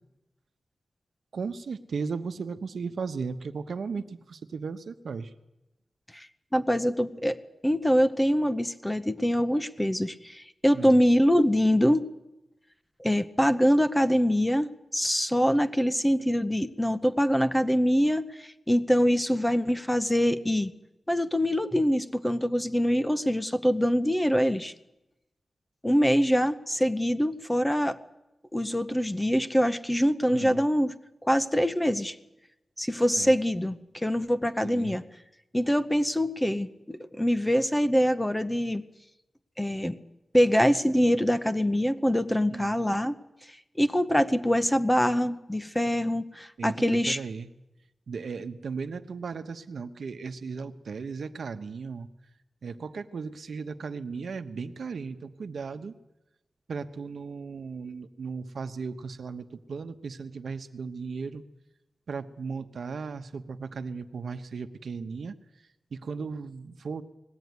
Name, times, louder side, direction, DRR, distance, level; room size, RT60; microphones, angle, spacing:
voice 1, 1.3-5.3 10.7-11.0 30.3-30.6 33.2-33.3 34.6-34.9 42.5-42.7 46.6-47.5 48.1-52.1 52.6-55.9 56.7-61.4 62.1-65.4 65.9-67.0, right 5 dB, 70° right, 9 dB, 1.0 m, -36 dB
voice 2, 6.5-7.4 7.6-12.1 13.0-20.7 21.1-24.7 25.8-28.0 28.5-30.9 31.2-32.2 32.8-35.0 35.5-38.8 39.6-40.0 40.3-43.1 43.8-47.2, equal, 5° left, 10 dB, 0.7 m, -24 dB
20.0 x 15.5 x 9.5 m, 0.95 s
wide cardioid pair, 175°, 0 cm